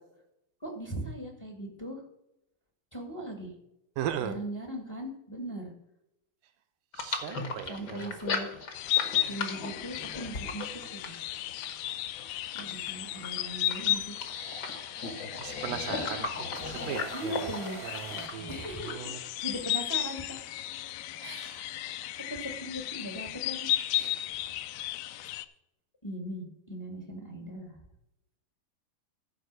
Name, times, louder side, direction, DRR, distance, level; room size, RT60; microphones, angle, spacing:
voice 1, 0.6-2.0 2.9-3.5 4.2-5.7 7.6-8.5 9.3-10.6 10.9-11.1 12.5-14.2 17.1-17.8 18.5-19.0 19.4-20.4 21.2-24.6 25.1-25.3 26.0-27.7, right 1 dB, 35° left, 1 dB, 0.4 m, -39 dB
voice 2, 4.0-4.4 7.0-8.2 15.4-19.2, right 10 dB, 80° right, 9 dB, 2.0 m, -38 dB
sound 1, 6.9-19.0, left 4 dB, 65° left, 1.0 m, -38 dB
sound 2, 8.7-25.5, left 14 dB, 85° left, 2.5 m, -35 dB
sound 3, 16.5-19.3, right 5 dB, 55° right, 0.9 m, -45 dB
14.5 x 5.2 x 6.3 m, 0.84 s
omnidirectional pair, 4.3 m